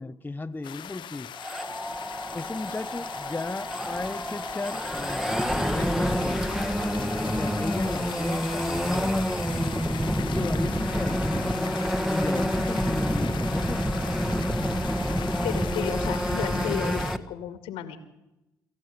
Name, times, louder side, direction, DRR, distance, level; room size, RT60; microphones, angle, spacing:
voice 1, 0.0-1.3 2.3-6.5 7.0-9.2 10.2-11.8 12.1-13.9, left 3 dB, 20° left, 9 dB, 0.9 m, -35 dB
sound 1, 0.6-17.1, left 10 dB, 55° left, 0.8 m, -40 dB
sound 2, 1.4-17.2, equal, 5° right, 1.7 m, -28 dB
voice 2, 15.4-18.0, left 10 dB, 70° left, 11 dB, 2.2 m, -33 dB
27.5 x 14.5 x 8.3 m, 0.96 s
hypercardioid pair, 45°, 10 cm